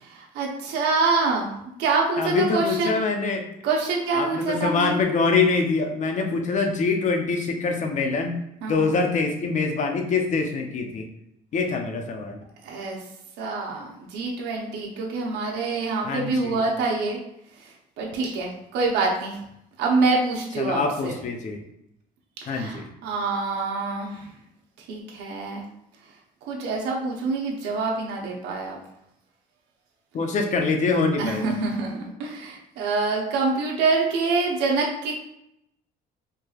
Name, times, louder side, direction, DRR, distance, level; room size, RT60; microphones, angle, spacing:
voice 1, 0.0-3.0 3.6-5.0 8.6-8.9 12.6-13.0 13.4-17.2 17.6-19.4 19.8-21.2 22.4-24.3 24.9-25.6 26.5-28.8 31.2-35.1, right 3 dB, 90° right, -1 dB, 0.8 m, -26 dB
voice 2, 2.2-3.4 4.1-8.3 8.7-11.1 11.5-12.4 16.1-16.6 20.6-21.6 22.5-22.9 30.1-31.5, left 4 dB, 45° left, 4 dB, 0.7 m, -24 dB
4.7 x 3.1 x 2.4 m, 0.79 s
cardioid pair, 110°, 17 cm